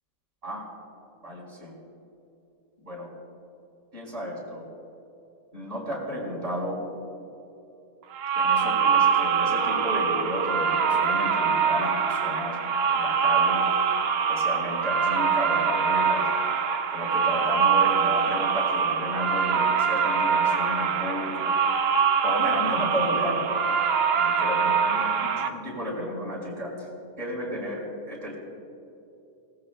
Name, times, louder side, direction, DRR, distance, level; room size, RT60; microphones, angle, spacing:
voice 1, 1.2-1.7 2.8-3.1 3.9-4.7 5.5-6.8 8.3-12.6 12.9-13.6 14.3-16.3 16.9-21.5 22.2-23.5 24.1-26.9 27.2-28.3, equal, 35° right, -4 dB, 4.6 m, -33 dB
sound 1, 8.1-25.5, right 6 dB, 70° right, 0.6 m, -24 dB
27.0 x 19.0 x 2.2 m, 2.8 s
omnidirectional pair, 1.9 m